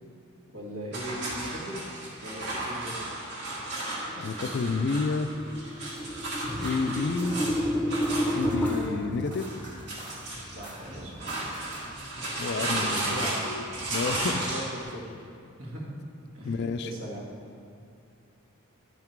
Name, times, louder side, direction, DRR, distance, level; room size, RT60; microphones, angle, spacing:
voice 1, 0.5-1.9 2.2-3.1 10.5-11.5 12.0-13.4 14.4-14.6 14.9-15.1 15.6-15.9 16.3-16.5 16.8-17.2, right 1 dB, 75° right, -4 dB, 2.0 m, -39 dB
sound 1, 0.9-14.8, right 1 dB, 55° right, 1.8 m, -34 dB
sound 2, 4.0-8.7, equal, 5° left, 0.6 m, -31 dB
voice 2, 4.2-5.3 6.6-7.4 8.3-9.5 12.4-13.6 13.9-14.4 16.4-16.9, left 4 dB, 50° left, 10 dB, 0.3 m, -30 dB
sound 3, 5.6-12.0, right 1 dB, 35° right, 1.9 m, -47 dB
10.5 x 5.8 x 4.6 m, 2.4 s
head